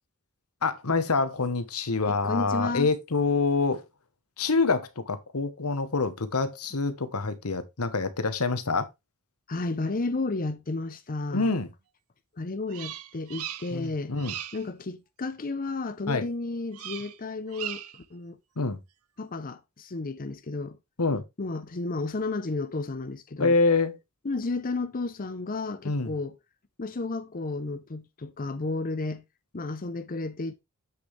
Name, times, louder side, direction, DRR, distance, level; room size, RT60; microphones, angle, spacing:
voice 1, 0.6-3.8 4.4-8.9 11.3-11.7 13.7-14.3 16.1-16.2 18.6-18.8 21.0-21.2 23.4-24.0 25.8-26.1, left 3 dB, 85° left, 1.2 m, -26 dB
voice 2, 2.1-2.9 9.5-11.5 12.4-14.1 14.5-18.4 19.2-20.8 21.4-23.6 24.2-26.4 26.8-29.2 29.5-30.5, left 3 dB, 40° left, 0.7 m, -32 dB
Bird vocalization bird call bird song, 12.7-13.9 14.2-14.7 16.7-17.2 17.5-18.0, right 12 dB, 90° right, 0.8 m, -38 dB
7.8 x 6.8 x 3.3 m
head